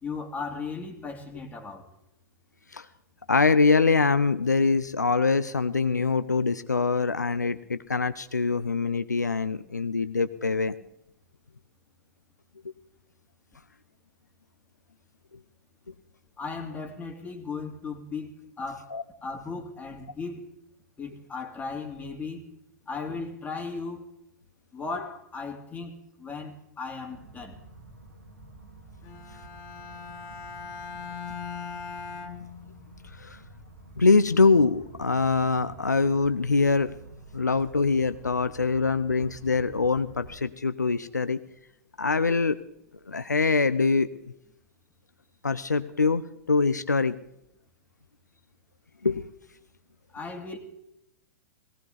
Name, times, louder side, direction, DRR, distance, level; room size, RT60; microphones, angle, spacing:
voice 1, 0.0-1.9 16.4-18.9 19.2-20.5 21.0-22.4 22.9-24.1 24.7-27.6 50.1-50.6, left 4 dB, 15° left, 2.8 m, -36 dB
voice 2, 3.3-10.7 18.9-19.0 33.2-33.4 34.0-36.9 37.3-41.4 42.0-42.6 43.1-44.1 45.4-46.2 46.5-47.2 49.0-49.2, left 4 dB, 85° left, 0.7 m, -24 dB
sound 1, 27.1-40.4, right 2 dB, 80° right, 3.7 m, -49 dB
Bowed string instrument, 29.0-33.1, left 5 dB, 40° left, 1.9 m, -40 dB
19.0 x 17.5 x 4.0 m
figure-of-eight pair, 100°, 9 cm